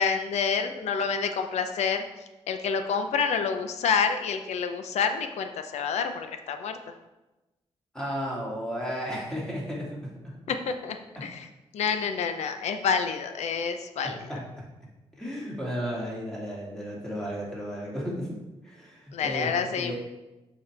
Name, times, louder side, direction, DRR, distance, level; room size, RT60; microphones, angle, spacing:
voice 1, 0.0-2.0 2.5-6.8 10.5-11.5 11.7-14.1 19.1-19.9, left 6 dB, 90° left, 7 dB, 0.6 m, -28 dB
voice 2, 7.9-10.4 11.2-11.3 14.0-14.7 15.1-18.4 18.6-19.5 19.8-19.9, equal, 5° left, -5 dB, 2.3 m, -34 dB
7.0 x 5.0 x 3.3 m, 1.0 s
cardioid pair, 90°, 11 cm